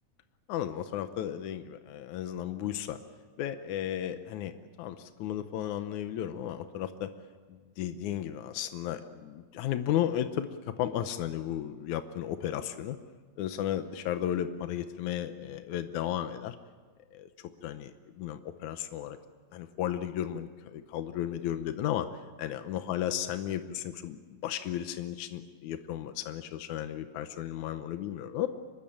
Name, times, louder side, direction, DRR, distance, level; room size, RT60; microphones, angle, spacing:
voice 1, 0.5-3.0 3.4-4.5 4.8-7.1 7.8-10.5 10.8-13.0 13.4-16.6 17.1-17.3 17.6-19.2 19.5-22.1 22.4-28.5, left 11 dB, 85° left, 9 dB, 2.3 m, -34 dB
26.0 x 22.0 x 8.9 m, 1.5 s
omnidirectional pair, 3.3 m